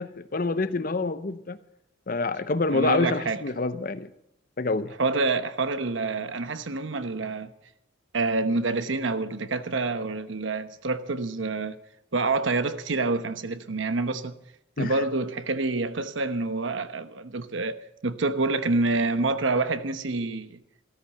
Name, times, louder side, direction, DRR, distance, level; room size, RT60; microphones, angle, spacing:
voice 1, 0.0-1.6 2.1-4.1 4.6-4.9 14.8-15.0, left 3 dB, 45° left, 0.7 m, -27 dB
voice 2, 2.7-3.4 5.0-7.5 8.1-11.8 12.1-14.3 14.8-20.6, right 3 dB, 75° right, 1.0 m, -27 dB
13.5 x 13.5 x 6.7 m
head